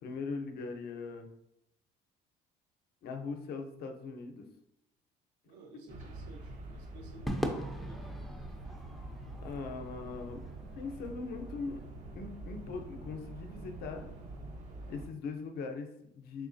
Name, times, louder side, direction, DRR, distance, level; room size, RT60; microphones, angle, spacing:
voice 1, 0.0-1.3 3.0-4.5 9.4-10.4 10.8-11.8 12.1-14.1 14.9-16.5, left 4 dB, 60° left, 4 dB, 0.6 m, -40 dB
voice 2, 5.4-8.1, right 3 dB, 90° right, 2 dB, 0.8 m, -54 dB
sound 1, 5.9-15.1, right 2 dB, 45° right, 0.7 m, -45 dB
Crowd / Fireworks, 7.3-11.7, equal, ahead, 0.4 m, -41 dB
3.5 x 3.0 x 2.6 m, 0.79 s
cardioid pair, 100°, 18 cm